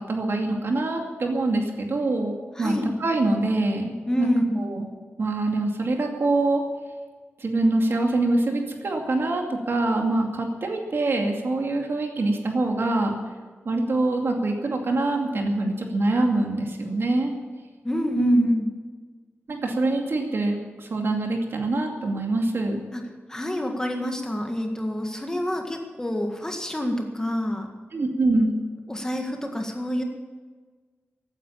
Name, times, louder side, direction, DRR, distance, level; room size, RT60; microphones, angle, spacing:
voice 1, 0.1-4.3 4.6-4.9 5.2-6.6 7.4-13.2 13.7-17.3 18.2-18.5 19.5-22.8 27.9-28.5, right 2 dB, 65° right, 2 dB, 2.4 m, -24 dB
voice 2, 2.6-2.9 4.1-4.7 17.8-18.7 22.9-23.0 23.3-27.7 28.9-30.0, left 1 dB, 15° left, 3 dB, 1.8 m, -27 dB
15.5 x 9.5 x 8.7 m, 1.4 s
wide cardioid pair, 130°, 4 cm